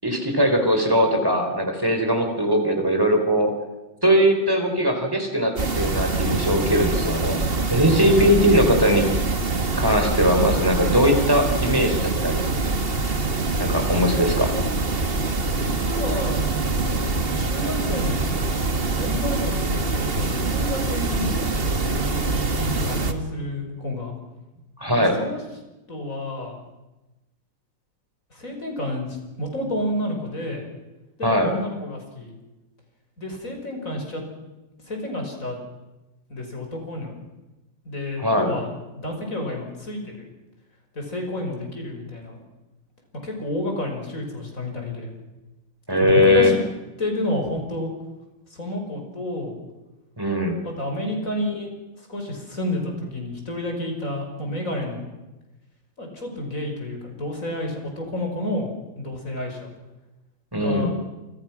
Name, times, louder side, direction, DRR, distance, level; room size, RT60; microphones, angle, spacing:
voice 1, 0.0-3.5 4.0-7.4 7.7-9.1 9.8-12.4 13.6-14.5 24.8-25.2 31.2-31.5 38.2-38.5 45.9-46.5 50.2-50.6 60.5-60.9, equal, 10° right, 4 dB, 4.6 m, -20 dB
sound 1, 5.6-23.1, right 3 dB, 35° right, 1.7 m, -24 dB
voice 2, 7.9-8.4 15.2-16.4 17.4-18.2 19.0-24.1 24.9-25.4 25.9-26.6 28.3-30.6 31.2-32.3 33.2-34.2 34.8-35.6 36.3-37.1 37.8-38.7 38.9-40.3 40.9-42.4 43.2-45.1 46.0-46.6 47.0-47.9 48.5-49.5 50.6-51.7 52.1-55.1 56.0-58.7 59.0-59.7 60.6-60.9, left 1 dB, 45° left, 2 dB, 6.3 m, -30 dB
28.5 x 26.0 x 6.2 m, 1.1 s
omnidirectional pair, 2.0 m